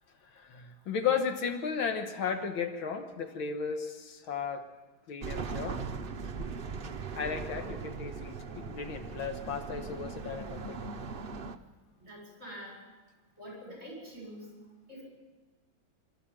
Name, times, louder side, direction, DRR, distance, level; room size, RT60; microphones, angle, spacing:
voice 1, 0.3-4.7 5.1-5.8 7.2-10.9, left 6 dB, 80° left, 6 dB, 2.1 m, -34 dB
sound 1, 5.2-11.6, right 5 dB, 60° right, 0.5 m, -39 dB
voice 2, 12.0-12.8 13.4-14.5 14.9-15.0, equal, 35° right, -2 dB, 7.7 m, -45 dB
26.0 x 13.5 x 7.5 m, 1.2 s
omnidirectional pair, 2.2 m